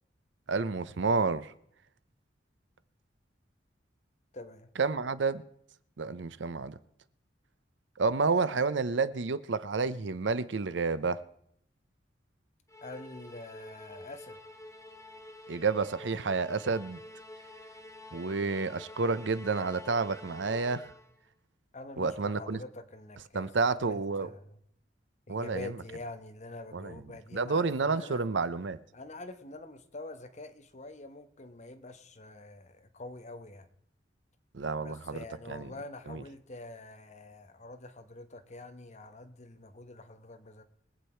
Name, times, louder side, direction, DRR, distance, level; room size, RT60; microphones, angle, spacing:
voice 1, 0.5-1.5 4.8-5.4 6.0-6.8 8.0-11.2 15.5-17.0 18.1-20.9 22.0-22.6 23.3-24.3 25.3-25.7 26.7-26.9 27.3-28.8 34.5-35.7 36.1-36.2, right 4 dB, 85° right, 0.7 m, -30 dB
voice 2, 4.3-4.7 12.8-14.4 21.7-24.6 25.3-28.2 28.9-33.7 34.8-40.6, left 2 dB, 40° left, 1.2 m, -46 dB
Musical instrument, 12.7-21.2, left 1 dB, 15° left, 1.2 m, -48 dB
23.0 x 8.4 x 4.5 m
head